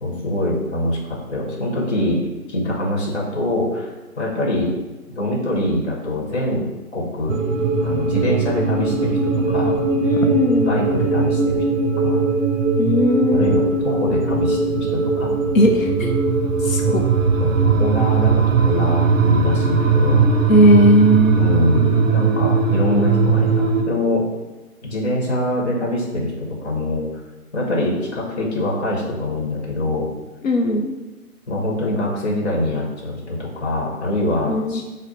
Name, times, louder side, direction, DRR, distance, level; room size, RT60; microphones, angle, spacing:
voice 1, 0.0-2.2 2.5-4.7 5.1-6.6 6.9-7.4 7.8-9.7 10.7-12.2 13.3-14.6 14.9-15.4 16.9-17.0 17.4-20.3 21.3-24.2 24.8-27.1 27.5-30.1 31.5-34.8, left 1 dB, 45° left, -3 dB, 1.1 m, -23 dB
sound 1, 7.3-23.8, right 4 dB, 60° right, 0.5 m, -19 dB
voice 2, 10.0-10.8 12.8-13.5 15.5-16.1 16.6-17.0 20.5-21.5 30.4-30.9 34.5-34.8, equal, 60° left, 3 dB, 0.6 m, -17 dB
5.0 x 2.1 x 4.1 m, 1.1 s
hypercardioid pair, 175°, 44 cm